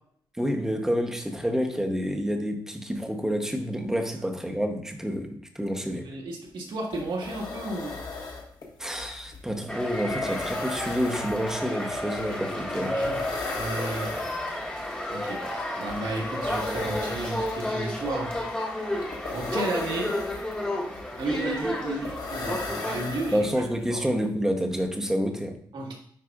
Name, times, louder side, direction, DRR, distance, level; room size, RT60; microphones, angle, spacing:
voice 1, 0.4-6.1 8.8-13.0 23.3-25.6, equal, 5° right, 3 dB, 0.8 m, -28 dB
voice 2, 5.9-7.9 12.8-13.2 13.5-14.1 15.1-15.4 15.7-18.3 19.3-20.1 21.2-23.5 23.9-24.1 25.7-25.9, right 2 dB, 75° right, -1 dB, 1.6 m, -32 dB
sound 1, 6.5-6.6 6.8-23.8, left 3 dB, 50° left, 1.5 m, -38 dB
sound 2, 9.7-23.0, left 1 dB, 10° left, 1.2 m, -32 dB
9.4 x 4.9 x 2.4 m, 0.64 s
wide cardioid pair, 130°, 8 cm